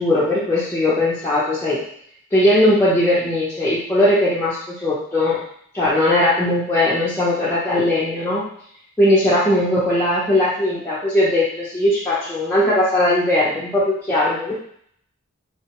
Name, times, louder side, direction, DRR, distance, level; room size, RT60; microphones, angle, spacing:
voice 1, 0.0-1.8 2.3-5.4 5.7-8.4 9.0-14.5, left 1 dB, 10° left, -10 dB, 0.7 m, -19 dB
3.7 x 2.2 x 2.9 m, 0.63 s
head